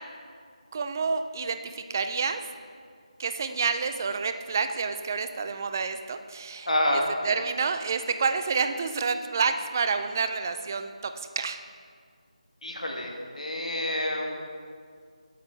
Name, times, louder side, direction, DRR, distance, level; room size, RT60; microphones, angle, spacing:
voice 1, 0.7-2.4 3.2-11.6, right 5 dB, 30° right, 9 dB, 0.4 m, -29 dB
voice 2, 6.7-7.1 12.6-14.3, left 1 dB, 80° left, 0 dB, 1.5 m, -28 dB
8.0 x 7.6 x 4.4 m, 2.1 s
figure-of-eight pair, 160°, 4 cm